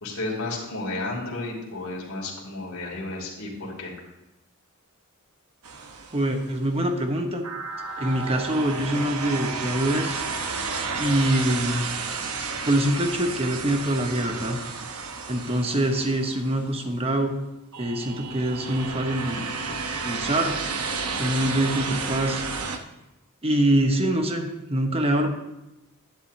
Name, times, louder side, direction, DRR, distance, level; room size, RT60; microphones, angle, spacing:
voice 1, 0.0-3.9, left 2 dB, 75° left, -2 dB, 2.9 m, -32 dB
sound 1, 5.6-6.7 7.4-16.9 17.7-22.8, right 4 dB, 80° right, 1.0 m, -32 dB
voice 2, 6.1-7.4 8.0-10.2 11.0-11.9 12.4-14.6 15.3-17.3 17.8-20.6 21.2-22.4 23.4-25.3, right 1 dB, 25° right, 4 dB, 1.1 m, -24 dB
11.0 x 10.5 x 2.8 m, 0.96 s
head